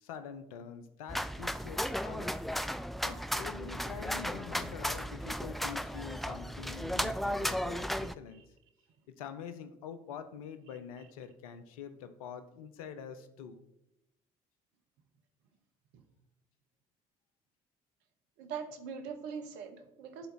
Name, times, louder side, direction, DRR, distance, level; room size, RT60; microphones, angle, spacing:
voice 1, 0.0-2.4 3.0-8.5 9.1-13.7, left 7 dB, 80° left, 0.6 m, -45 dB
sound 1, 1.1-8.1, equal, ahead, 0.4 m, -35 dB
voice 2, 18.4-20.3, right 6 dB, 70° right, 1.0 m, -42 dB
10.5 x 3.9 x 4.2 m
hypercardioid pair, 50°, 18 cm